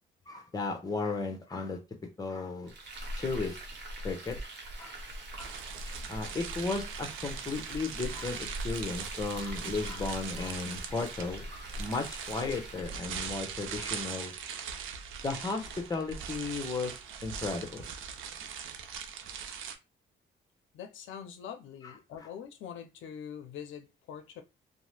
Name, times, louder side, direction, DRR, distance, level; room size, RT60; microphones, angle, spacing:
voice 1, 0.3-1.8 2.2-2.7 3.2-3.6 4.0-4.4 4.8-5.0 5.3-5.5 6.1-14.3 15.2-16.9 17.2-17.9 21.8-22.3, left 3 dB, 20° left, 0.9 m, -35 dB
Frying (food), 2.7-13.0, right 1 dB, 60° right, 0.9 m, -42 dB
sound 1, 5.4-19.7, right 7 dB, 85° right, 0.5 m, -41 dB
voice 2, 20.7-24.4, left 8 dB, 75° left, 0.5 m, -44 dB
2.7 x 2.1 x 3.2 m
cardioid pair, 90°, 20 cm